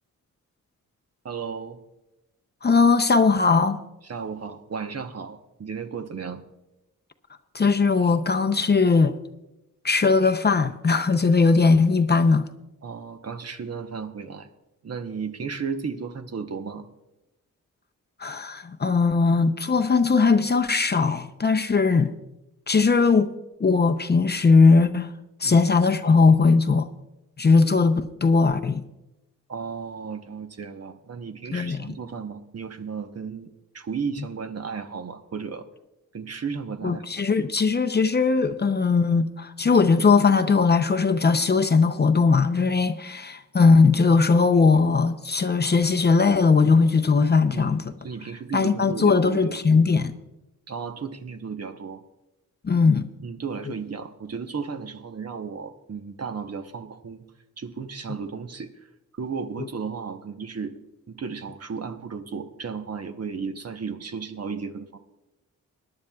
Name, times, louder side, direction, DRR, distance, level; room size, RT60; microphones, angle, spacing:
voice 1, 1.2-1.8 4.0-6.4 12.8-14.5 14.8-16.9 25.4-25.6 29.5-35.7 36.1-37.0 47.5-49.6 50.7-52.0 53.2-57.2 57.6-58.7 59.1-60.7 61.1-65.0, right 5 dB, 50° right, 1.0 m, -34 dB
voice 2, 2.6-3.8 7.5-9.2 9.8-12.5 18.2-22.1 22.7-23.3 23.6-25.1 25.4-26.9 27.4-28.8 31.5-31.9 36.8-47.8 48.5-50.1 52.6-53.1 59.6-59.7, left 4 dB, 30° left, 0.6 m, -19 dB
21.5 x 11.0 x 2.3 m
cardioid pair, 75°, 33 cm